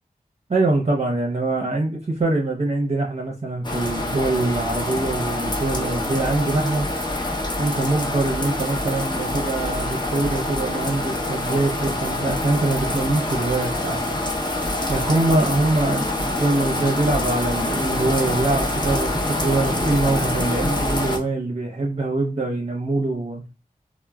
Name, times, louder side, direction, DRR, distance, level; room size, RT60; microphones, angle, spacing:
voice 1, 0.5-6.9 7.6-14.5 14.9-23.4, right 2 dB, 45° right, -1 dB, 0.7 m, -23 dB
sound 1, 3.6-21.2, left 1 dB, 30° left, 0.8 m, -25 dB
3.0 x 2.1 x 2.3 m, 0.29 s
cardioid pair, 40°, 15 cm